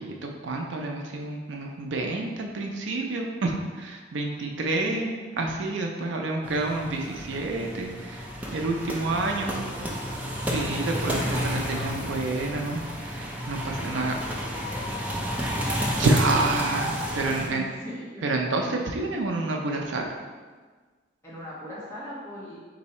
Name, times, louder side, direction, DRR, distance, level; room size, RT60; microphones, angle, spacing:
voice 1, 0.0-9.5 10.4-14.1 16.0-17.7 18.2-20.2, right 2 dB, 70° right, 1 dB, 0.5 m, -28 dB
voice 2, 4.1-5.2 9.0-10.2 11.0-12.1 13.6-15.2 17.2-18.3 21.2-22.6, left 1 dB, 15° left, -8 dB, 1.0 m, -41 dB
sound 1, 6.4-17.5, equal, 10° right, 0.4 m, -31 dB
4.0 x 2.7 x 4.2 m, 1.4 s
head